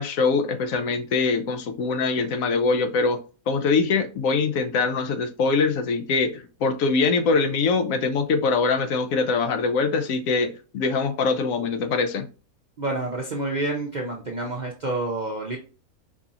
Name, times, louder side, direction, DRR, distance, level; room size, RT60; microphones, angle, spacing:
voice 1, 0.0-3.2 3.5-12.3, left 4 dB, 70° left, 8 dB, 1.0 m, -23 dB
voice 2, 12.8-15.6, right 2 dB, 50° right, -1 dB, 0.5 m, -28 dB
4.7 x 2.8 x 2.5 m, 0.35 s
omnidirectional pair, 1.5 m